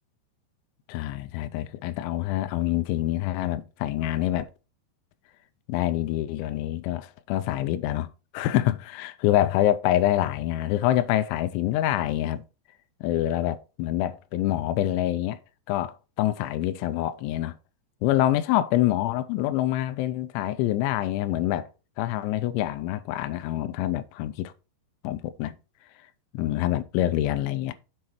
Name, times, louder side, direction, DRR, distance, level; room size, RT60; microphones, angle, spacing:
voice 1, 0.9-4.5 5.7-12.4 13.0-15.4 15.7-17.6 18.0-21.7 22.0-24.5 25.0-25.6 26.3-27.8, left 13 dB, 85° left, 3.0 m, -26 dB
8.1 x 4.8 x 4.3 m
omnidirectional pair, 5.3 m